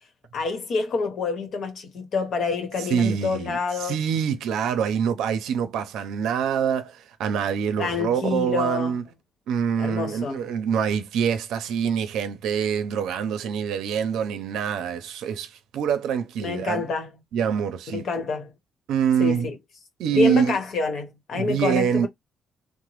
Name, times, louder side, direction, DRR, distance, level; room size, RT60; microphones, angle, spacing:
voice 1, 0.3-4.0 7.8-9.0 9.8-10.4 16.4-17.1 17.9-18.5 19.2-19.6 20.1-22.1, left 4 dB, 65° left, 1.0 m, -27 dB
voice 2, 2.9-9.0 9.5-16.8 17.3-18.0 18.9-19.5 20.0-20.6 21.3-22.1, right 7 dB, 85° right, 0.6 m, -25 dB
3.0 x 2.1 x 3.0 m
cardioid pair, 90°, 0 cm